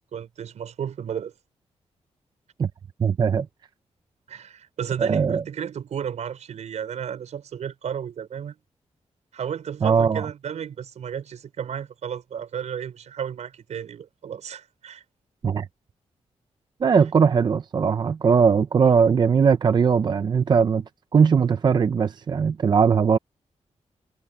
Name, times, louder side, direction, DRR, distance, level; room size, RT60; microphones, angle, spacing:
voice 1, 0.1-1.3 4.3-8.6 9.3-15.0, right 8 dB, 80° right, 5.2 m, -33 dB
voice 2, 3.0-3.5 5.0-5.4 9.8-10.3 15.4-15.7 16.8-20.8 21.1-23.2, right 6 dB, 40° right, 0.5 m, -19 dB
wide cardioid pair, 170°, 12 cm